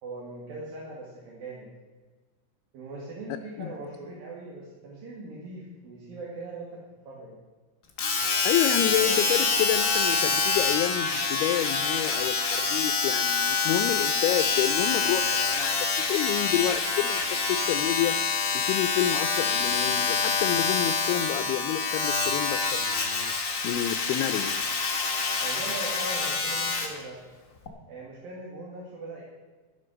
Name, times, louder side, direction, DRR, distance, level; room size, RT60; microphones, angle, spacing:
voice 1, 0.0-1.7 2.7-7.3 25.4-27.2 27.9-29.2, right 2 dB, 65° right, -4 dB, 3.9 m, -40 dB
Domestic sounds home sounds, 8.0-27.0 27.7-27.8, left 4 dB, 45° left, 1.4 m, -26 dB
voice 2, 8.4-18.2 18.5-24.5, left 12 dB, 85° left, 8 dB, 2.6 m, -29 dB
12.5 x 12.0 x 6.4 m, 1.3 s
omnidirectional pair, 4.5 m